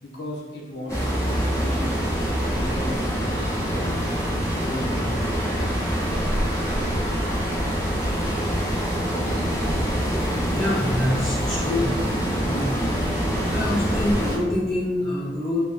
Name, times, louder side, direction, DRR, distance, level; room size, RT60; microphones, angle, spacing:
voice 1, 0.0-1.9 2.5-3.0 3.7-4.1 4.5-5.8, left 1 dB, 80° left, -1 dB, 0.6 m, -34 dB
sound 1, 0.9-14.4, equal, 15° left, 0.9 m, -25 dB
voice 2, 10.5-11.9 12.4-12.8 13.5-15.6, left 1 dB, ahead, -12 dB, 1.3 m, -25 dB
3.5 x 2.7 x 3.3 m, 1.3 s
head